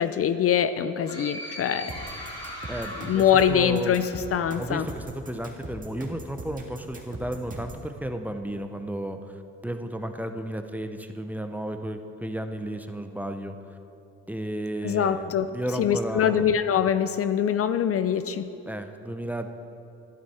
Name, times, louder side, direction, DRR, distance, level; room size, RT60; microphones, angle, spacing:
voice 1, 0.0-1.9 3.0-4.9 14.8-15.5 15.8-18.5, left 8 dB, 50° left, 11 dB, 0.5 m, -23 dB
sound 1, 1.0-4.7, equal, 15° left, 2.6 m, -40 dB
sound 2, 1.9-7.9, right 1 dB, 25° right, 2.0 m, -40 dB
voice 2, 2.7-4.0 4.6-13.6 14.3-16.5 18.7-19.5, right 1 dB, 5° right, 6 dB, 0.7 m, -33 dB
12.0 x 11.0 x 4.3 m, 2.7 s
cardioid pair, 90°, 30 cm